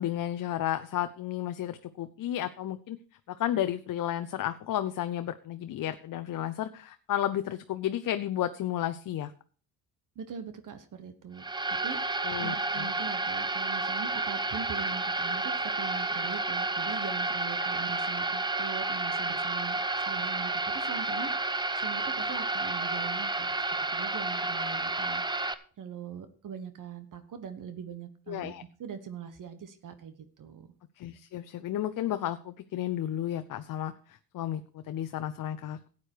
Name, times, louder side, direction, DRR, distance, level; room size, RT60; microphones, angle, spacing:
voice 1, 0.0-3.0 3.3-9.3 12.2-12.9 28.3-28.6 31.0-35.9, left 12 dB, 60° left, 10 dB, 0.7 m, -32 dB
voice 2, 10.1-23.6 23.9-28.5 28.8-30.7, right 7 dB, 55° right, 10 dB, 1.3 m, -42 dB
sound 1, 11.4-25.5, right 2 dB, 10° right, 0.8 m, -31 dB
12.5 x 8.5 x 4.6 m, 0.40 s
cardioid pair, 95°, 37 cm